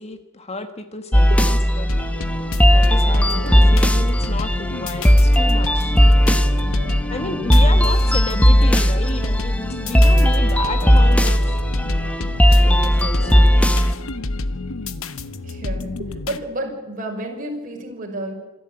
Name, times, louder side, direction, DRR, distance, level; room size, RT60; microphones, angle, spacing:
voice 1, 0.0-1.9 2.7-6.0 7.1-11.6 12.5-13.6, left 2 dB, 30° left, 8 dB, 1.3 m, -32 dB
sound 1, 1.1-13.9, equal, 5° left, 1.1 m, -16 dB
sound 2, 1.9-16.4, left 2 dB, 70° left, 1.2 m, -29 dB
voice 2, 3.1-3.4 6.6-7.6 15.4-18.3, right 1 dB, 40° right, 1 dB, 5.5 m, -32 dB
26.5 x 13.0 x 8.9 m, 1.2 s
head